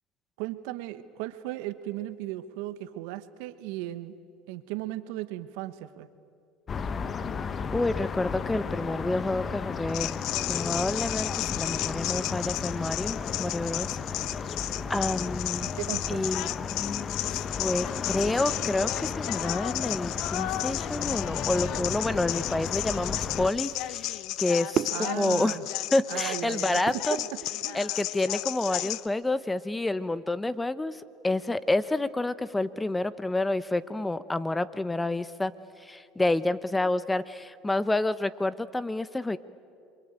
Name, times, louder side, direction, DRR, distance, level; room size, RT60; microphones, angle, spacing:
voice 1, 0.4-4.1 4.5-6.1 15.8-16.3 24.9-25.6 26.1-27.2 27.6-27.8, right 15 dB, 80° right, 13 dB, 1.2 m, -36 dB
sound 1, 6.7-23.5, left 5 dB, 35° left, 1.1 m, -34 dB
voice 2, 7.7-10.1 10.5-14.0 14.9-15.7 16.1-16.5 17.6-25.6 25.9-27.2 27.7-31.0 31.2-35.5 35.8-39.4, left 2 dB, 10° left, 16 dB, 0.9 m, -29 dB
sound 2, 9.9-29.1, left 16 dB, 65° left, 0.7 m, -33 dB
sound 3, 21.8-28.0, right 10 dB, 45° right, 0.6 m, -37 dB
27.0 x 23.5 x 9.0 m, 2.5 s
supercardioid pair, 100°, 0 cm